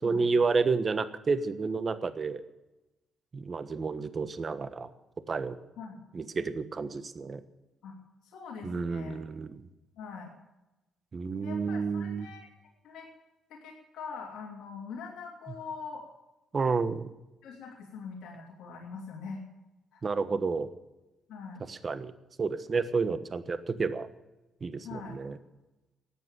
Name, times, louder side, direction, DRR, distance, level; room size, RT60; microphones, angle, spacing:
voice 1, 0.0-2.4 3.3-4.9 5.3-5.6 6.1-7.4 8.6-9.6 11.1-12.3 16.5-17.1 20.0-20.7 21.7-22.1 22.4-24.1 24.6-25.4, right 4 dB, 35° right, 12 dB, 1.2 m, -30 dB
voice 2, 8.2-9.2 10.0-10.3 11.4-12.5 12.8-13.1 13.5-16.1 17.4-19.4 19.9-20.0 21.3-21.6 24.8-25.2, left 5 dB, 75° left, -2 dB, 2.7 m, -43 dB
14.0 x 9.2 x 9.0 m, 1.0 s
cardioid pair, 90°, 0 cm